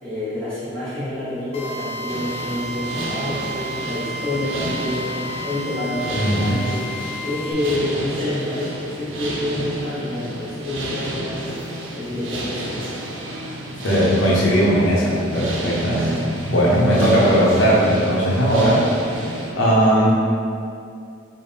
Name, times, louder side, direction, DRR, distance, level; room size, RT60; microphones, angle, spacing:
voice 1, 0.0-6.8 7.2-11.7 12.0-12.9, left 1 dB, 5° left, -15 dB, 1.1 m, -27 dB
Drill, 1.5-7.5, right 1 dB, 30° left, 0.3 m, -32 dB
sound 1, 2.1-19.5, right 1 dB, 75° right, 0.5 m, -32 dB
voice 2, 6.2-6.5 13.8-19.2 19.5-20.1, equal, 75° left, -6 dB, 0.7 m, -18 dB
3.4 x 2.1 x 3.9 m, 2.5 s
head